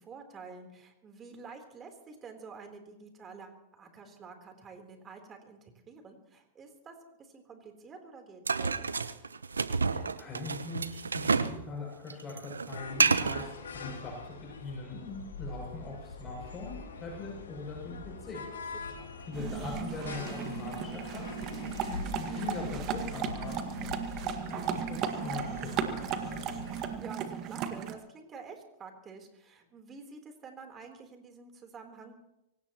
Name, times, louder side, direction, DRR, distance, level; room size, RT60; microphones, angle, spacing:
voice 1, 0.0-8.9 19.0-19.1 26.7-32.2, right 4 dB, 25° right, 4 dB, 3.7 m, -49 dB
sound 1, 8.5-11.6 11.9-13.5, right 4 dB, 90° right, 0.9 m, -29 dB
voice 2, 9.9-18.4 19.3-23.9 24.2-26.4, left 3 dB, 25° left, -2 dB, 7.2 m, -42 dB
sound 2, 12.7-27.0, left 4 dB, 80° left, 2.9 m, -43 dB
sound 3, 19.3-27.9, right 8 dB, 40° right, 1.7 m, -36 dB
24.5 x 18.0 x 3.1 m, 0.89 s
hypercardioid pair, 100°, 0 cm